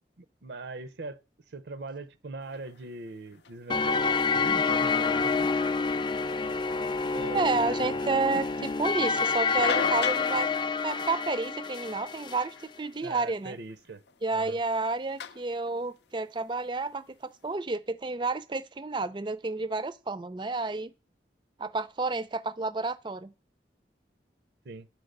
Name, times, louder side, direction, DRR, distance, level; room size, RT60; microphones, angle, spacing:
voice 1, 0.2-1.2 1.5-5.5 7.1-8.0 13.0-14.0 14.3-14.6 24.6-24.9, right 3 dB, 75° right, 0.7 m, -41 dB
sound 1, 2.4-17.5, left 6 dB, 75° left, 0.6 m, -42 dB
sound 2, 3.7-12.5, left 4 dB, 25° left, 0.5 m, -28 dB
voice 2, 7.3-10.5 10.8-13.6 14.2-20.9 21.6-23.3, right 3 dB, 25° right, 0.5 m, -30 dB
10.5 x 4.5 x 6.5 m
head